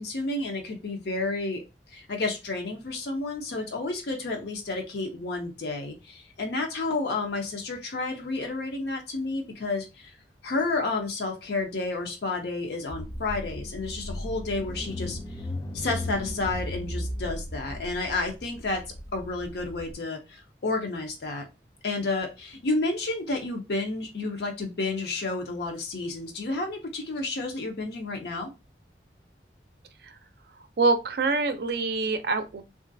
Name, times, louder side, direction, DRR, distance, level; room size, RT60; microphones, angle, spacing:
voice 1, 0.0-1.6 1.9-10.1 10.4-15.2 15.7-18.8 19.1-21.4 21.8-28.5, left 3 dB, 70° left, 2 dB, 0.5 m, -31 dB
Car / Engine, 12.9-19.9, left 1 dB, 20° left, 0.3 m, -36 dB
voice 2, 30.8-32.6, right 3 dB, 60° right, 8 dB, 0.4 m, -25 dB
3.0 x 2.4 x 2.6 m, 0.26 s
head